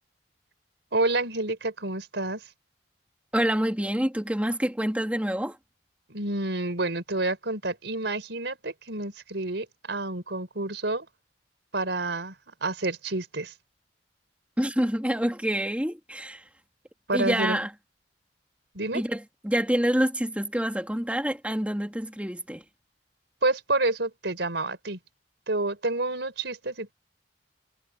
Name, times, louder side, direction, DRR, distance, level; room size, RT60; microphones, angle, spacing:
voice 1, 0.9-2.5 6.1-11.1 11.7-12.3 12.6-13.5 17.1-17.6 18.7-19.0 23.4-25.0 25.5-26.9, right 2 dB, 80° right, 4.3 m, -29 dB
voice 2, 3.3-5.6 14.6-16.4 17.1-17.7 18.9-22.6, equal, 10° right, 2.8 m, -27 dB
head